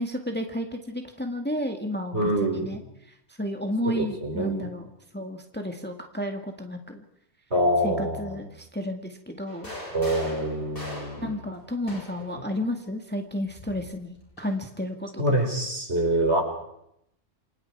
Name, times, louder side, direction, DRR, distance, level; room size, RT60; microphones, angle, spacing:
voice 1, 0.0-2.8 3.4-7.0 7.8-9.7 11.2-15.2, left 1 dB, 10° left, 4 dB, 2.0 m, -32 dB
voice 2, 2.1-2.7 3.9-4.7 7.5-8.4 9.9-11.4 15.2-16.4, right 1 dB, 55° right, 2 dB, 5.4 m, -25 dB
sound 1, 9.5-12.4 13.5-14.6, left 1 dB, 45° left, 8.0 m, -41 dB
29.0 x 24.5 x 4.8 m, 0.77 s
omnidirectional pair, 1.3 m